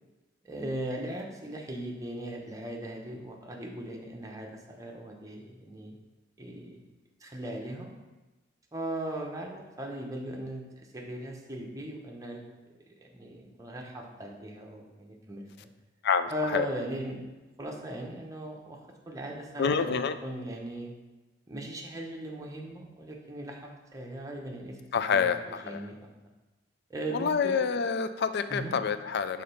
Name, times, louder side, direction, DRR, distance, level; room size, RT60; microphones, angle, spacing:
voice 1, 0.4-6.0 6.4-6.8 7.2-7.9 8.7-12.4 13.0-15.7 16.3-17.3 17.6-18.8 19.1-20.9 21.5-23.6 23.9-24.8 25.1-26.1 26.9-27.8 28.5-28.8, right 1 dB, 15° right, 0 dB, 0.9 m, -38 dB
voice 2, 16.0-16.7 19.6-20.1 24.9-25.8 27.1-29.4, left 6 dB, 60° left, 11 dB, 0.4 m, -27 dB
5.1 x 3.9 x 5.5 m, 1.1 s
head